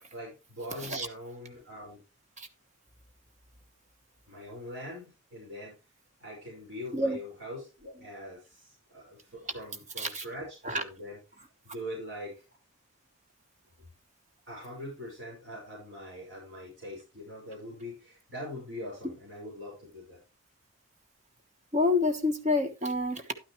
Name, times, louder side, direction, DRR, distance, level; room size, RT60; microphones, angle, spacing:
voice 1, 0.1-2.0 4.3-5.8 6.2-11.2 11.6-12.4 14.5-20.2, left 1 dB, 60° right, 5.3 m, -42 dB
voice 2, 21.7-23.3, left 2 dB, 35° right, 1.2 m, -28 dB
11.5 x 9.3 x 3.1 m
head